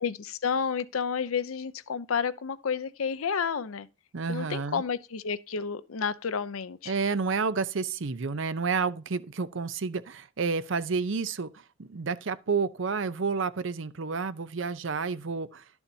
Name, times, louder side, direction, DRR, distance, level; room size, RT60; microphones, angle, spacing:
voice 1, 0.0-3.9 4.3-6.9, left 6 dB, 85° left, 0.6 m, -30 dB
voice 2, 4.1-4.8 6.9-11.5 11.8-15.6, right 4 dB, 65° right, 0.6 m, -30 dB
11.5 x 7.0 x 2.7 m
head